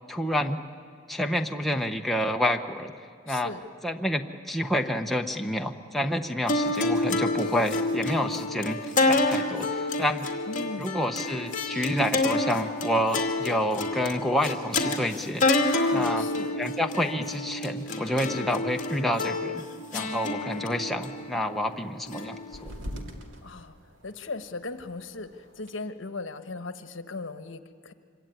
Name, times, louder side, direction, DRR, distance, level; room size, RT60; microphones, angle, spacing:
voice 1, 0.1-0.6 1.1-2.9 3.3-3.5 3.8-10.3 10.8-15.5 15.9-16.2 16.6-19.6 19.9-22.7, equal, ahead, 2 dB, 0.9 m, -28 dB
voice 2, 3.3-3.7 10.5-11.0 15.7-16.6 23.4-23.7 24.0-27.9, left 3 dB, 70° left, 9 dB, 1.2 m, -38 dB
sound 1, 6.5-22.9, left 2 dB, 40° left, 2.2 m, -28 dB
sound 2, 20.5-25.7, equal, 70° right, 2.5 m, -45 dB
25.5 x 24.0 x 9.3 m, 2.2 s
head